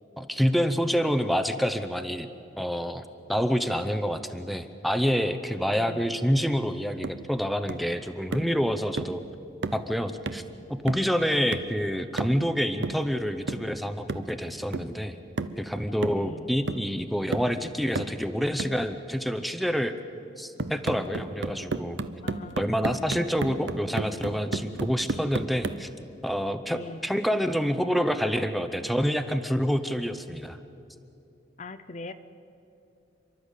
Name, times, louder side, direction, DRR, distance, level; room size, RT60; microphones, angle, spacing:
voice 1, 0.2-2.3 2.6-3.0 3.3-9.2 9.7-10.4 10.7-15.2 15.6-20.0 20.4-22.0 22.6-25.9 26.2-30.6, equal, ahead, 9 dB, 0.7 m, -27 dB
voice 2, 5.7-6.1 11.3-11.6 16.1-16.5 22.2-23.1 26.7-27.1 31.6-32.1, left 2 dB, 40° left, 11 dB, 0.6 m, -41 dB
sound 1, 7.0-7.3 7.7-7.9 8.3-8.6 9.0-9.2 9.6-9.9 10.3-10.5 10.9-11.2 11.5-11.8 12.2-12.5 12.8-13.1 13.5-13.7 14.1-14.3 14.7-15.0 15.4-15.6 16.0-16.4 16.7-16.9 17.3-17.6 18.0-18.2 18.6-18.8 20.6-25.9, right 3 dB, 80° right, 0.8 m, -33 dB
29.5 x 12.0 x 8.2 m, 2.7 s
head